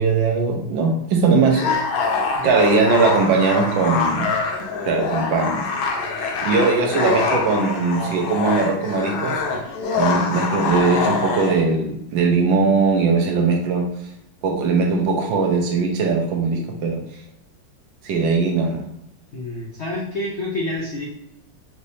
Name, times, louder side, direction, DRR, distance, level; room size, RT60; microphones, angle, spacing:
voice 1, 0.0-1.6 2.4-4.3 4.8-5.6 6.4-9.4 10.0-13.9 14.4-17.0 18.0-18.8, right 4 dB, 75° right, 1 dB, 1.5 m, -20 dB
sound 1, 1.5-11.6, left 4 dB, 85° left, 1.5 m, -24 dB
voice 2, 19.3-21.1, left 1 dB, 70° left, -3 dB, 0.6 m, -28 dB
5.1 x 3.3 x 2.7 m, 0.78 s
omnidirectional pair, 2.2 m